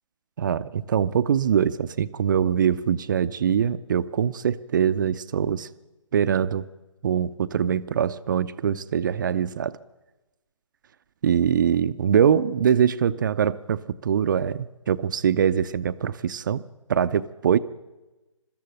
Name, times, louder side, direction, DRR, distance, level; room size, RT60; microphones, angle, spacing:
voice 1, 0.4-5.7 6.1-6.7 7.0-9.8 11.2-16.6 16.9-17.6, right 8 dB, 40° right, 13 dB, 0.6 m, -23 dB
21.5 x 13.5 x 9.0 m, 1.1 s
figure-of-eight pair, 140°, 17 cm